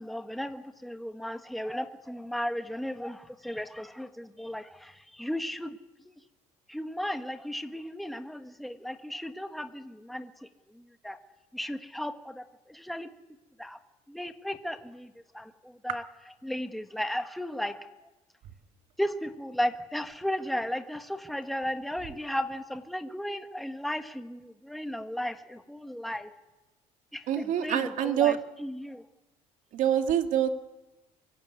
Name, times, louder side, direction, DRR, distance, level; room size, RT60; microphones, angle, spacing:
voice 1, 0.0-5.8 6.0-6.1 6.7-10.5 10.7-11.2 11.5-13.1 13.6-13.8 14.1-16.0 16.4-17.9 19.0-26.3 27.1-29.0, equal, ahead, 7 dB, 1.4 m, -35 dB
voice 2, 27.3-28.4 29.7-30.5, right 10 dB, 60° right, 6 dB, 2.6 m, -25 dB
25.5 x 23.0 x 9.6 m, 1.0 s
cardioid pair, 145°, 15 cm